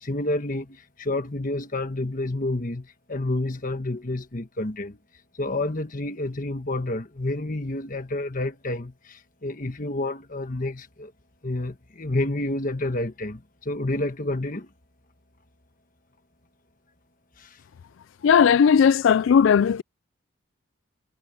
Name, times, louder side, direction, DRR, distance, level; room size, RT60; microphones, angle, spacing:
voice 1, 0.0-5.0 5.4-11.1 11.4-14.7 17.4-17.6, left 2 dB, 40° left, 1.4 m, -29 dB
voice 2, 18.2-19.8, left 7 dB, 65° left, 0.3 m, -17 dB
head